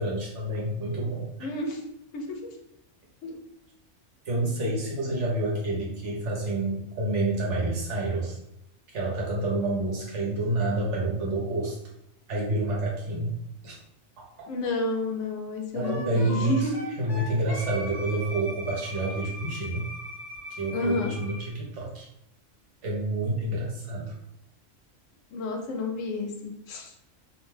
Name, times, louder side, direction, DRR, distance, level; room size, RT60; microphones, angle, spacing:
voice 1, 0.0-1.3 4.2-8.4 8.9-11.8 12.3-13.3 13.6-13.8 15.7-16.7 17.0-19.8 20.5-22.1 22.8-24.2, right 2 dB, 65° right, -3 dB, 1.1 m, -28 dB
voice 2, 1.4-1.8 2.1-2.4 3.2-3.4 14.5-16.9 20.7-21.1 25.3-26.9, left 2 dB, 80° left, 3 dB, 0.9 m, -30 dB
Wind instrument woodwind instrument, 15.8-21.5, equal, 30° left, 0.4 m, -39 dB
2.6 x 2.1 x 3.2 m, 0.82 s
omnidirectional pair, 1.3 m